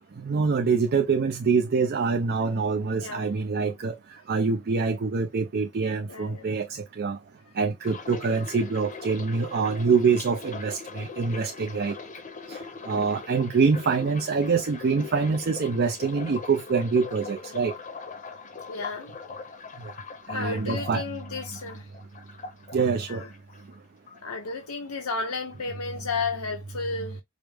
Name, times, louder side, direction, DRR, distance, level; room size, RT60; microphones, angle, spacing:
voice 1, 0.2-4.0 4.3-7.2 7.6-12.0 12.5-12.6 12.8-17.7 19.8-19.9 20.3-21.0 22.7-23.2, right 5 dB, 45° right, 0.4 m, -25 dB
voice 2, 3.0-3.3 6.1-6.5 8.3-8.4 18.7-19.1 20.3-21.9 23.1-23.3 24.2-27.2, left 4 dB, 85° left, 0.8 m, -33 dB
sound 1, 7.8-23.8 24.1-25.0 25.2-25.6, left 5 dB, 35° left, 0.7 m, -41 dB
5.0 x 2.0 x 3.4 m
head